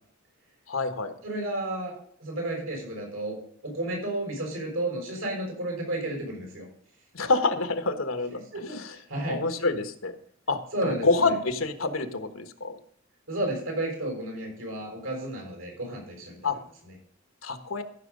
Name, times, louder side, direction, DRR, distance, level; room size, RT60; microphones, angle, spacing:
voice 1, 0.7-1.1 7.1-8.4 8.7-9.0 9.3-10.2 10.5-12.8 16.4-16.6 17.4-17.8, left 3 dB, 85° left, 9 dB, 1.3 m, -27 dB
voice 2, 1.2-3.4 3.6-6.7 8.5-9.4 10.7-11.3 13.3-16.5, right 1 dB, 90° right, 0 dB, 5.9 m, -32 dB
14.0 x 6.2 x 5.4 m, 0.62 s
head